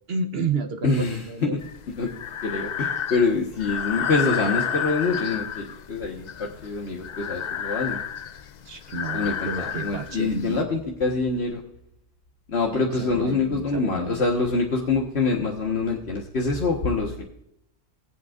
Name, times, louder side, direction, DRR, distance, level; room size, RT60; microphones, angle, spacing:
voice 1, 0.1-1.6 8.6-10.7 12.7-14.2, right 4 dB, 65° right, 5 dB, 1.0 m, -31 dB
voice 2, 0.8-1.6 2.0-2.1 2.4-8.0 9.1-11.6 12.5-17.2, left 3 dB, 75° left, 0 dB, 1.5 m, -25 dB
Breathing, 1.6-10.6, left 8 dB, 50° left, 0.6 m, -31 dB
21.0 x 7.7 x 2.4 m, 0.76 s
omnidirectional pair, 1.1 m